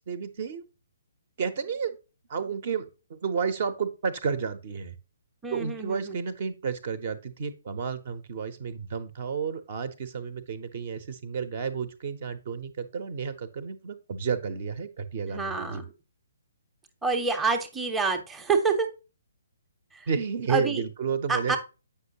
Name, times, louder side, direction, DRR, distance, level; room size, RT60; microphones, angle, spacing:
voice 1, 0.1-0.7 1.4-2.0 2.3-5.0 5.5-15.8 20.1-21.6, right 6 dB, 40° right, 13 dB, 0.8 m, -31 dB
voice 2, 5.4-6.2 15.3-15.9 17.0-18.9 19.9-20.1 20.5-20.8 21.3-21.6, right 4 dB, 5° right, 4 dB, 0.8 m, -27 dB
8.1 x 5.7 x 2.8 m, 0.30 s
figure-of-eight pair, 130°, 0 cm